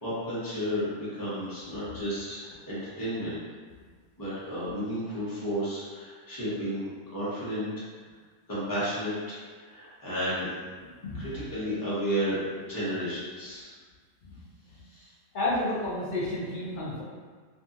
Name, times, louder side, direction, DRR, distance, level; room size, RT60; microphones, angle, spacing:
voice 1, 0.0-3.4 4.2-7.8 8.5-10.5 11.1-13.7 14.9-15.1, equal, 15° left, -11 dB, 0.9 m, -32 dB
voice 2, 15.3-17.0, left 2 dB, 60° left, -6 dB, 0.5 m, -31 dB
2.6 x 2.6 x 2.4 m, 1.5 s
omnidirectional pair, 1.4 m